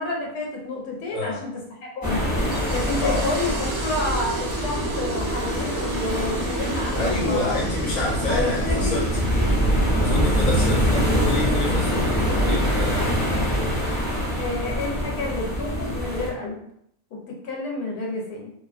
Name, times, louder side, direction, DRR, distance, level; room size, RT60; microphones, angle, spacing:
voice 1, 0.0-1.5 1.8-2.2 2.7-7.6 8.3-9.0 14.4-16.6 17.1-18.5, left 2 dB, 90° left, -1 dB, 1.1 m, -29 dB
voice 2, 1.1-1.4 3.0-3.2 6.9-9.1 10.0-13.2, left 2 dB, 65° left, -4 dB, 1.2 m, -28 dB
sound 1, 2.0-16.3, equal, 20° left, 0.7 m, -24 dB
sound 2, 2.4-13.4, right 2 dB, 85° right, 1.1 m, -34 dB
2.8 x 2.2 x 2.4 m, 0.71 s
omnidirectional pair, 1.5 m